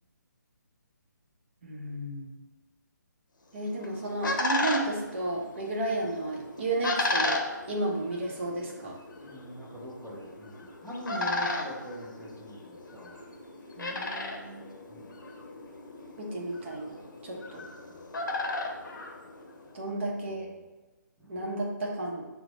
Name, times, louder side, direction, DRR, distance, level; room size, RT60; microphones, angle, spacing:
voice 1, 1.6-2.4 3.5-7.4 7.7-9.0 13.8-14.6 16.2-17.6 19.7-20.5 21.3-22.2, right 2 dB, 35° right, -2 dB, 0.7 m, -33 dB
sound 1, 3.6-19.8, left 2 dB, 80° left, 0.6 m, -35 dB
voice 2, 9.2-13.2 14.9-15.1 17.5-17.6 18.0-18.1 21.2-21.4, equal, ahead, -11 dB, 0.3 m, -42 dB
4.3 x 2.1 x 2.9 m, 1.1 s
hypercardioid pair, 165°, 10 cm